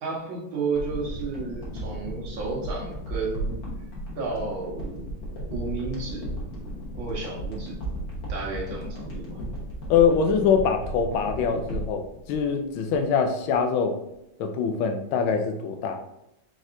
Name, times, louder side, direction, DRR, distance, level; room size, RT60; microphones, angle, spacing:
voice 1, 0.0-3.6 4.2-5.1 5.5-6.4 6.9-7.8 8.3-9.4, right 4 dB, 75° right, -3 dB, 2.0 m, -32 dB
sound 1, 0.7-13.2 13.5-13.6, right 1 dB, 50° left, 1.6 m, -35 dB
voice 2, 9.9-14.0 14.4-16.0, left 6 dB, 85° left, 5 dB, 1.4 m, -23 dB
4.7 x 4.1 x 2.5 m, 0.85 s
omnidirectional pair, 2.2 m